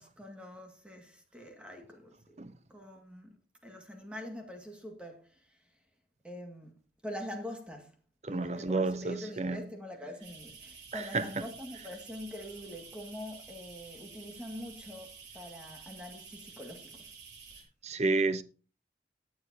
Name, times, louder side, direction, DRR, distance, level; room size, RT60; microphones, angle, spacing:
voice 1, 0.0-2.4 2.7-5.6 6.2-6.7 7.0-7.9 8.3-17.1, equal, 5° right, 1.9 m, -44 dB
voice 2, 8.2-9.6 10.9-11.4 17.8-18.4, right 3 dB, 40° right, 0.8 m, -31 dB
sound 1, 10.2-17.6, right 5 dB, 80° right, 4.4 m, -51 dB
19.0 x 7.2 x 2.8 m
head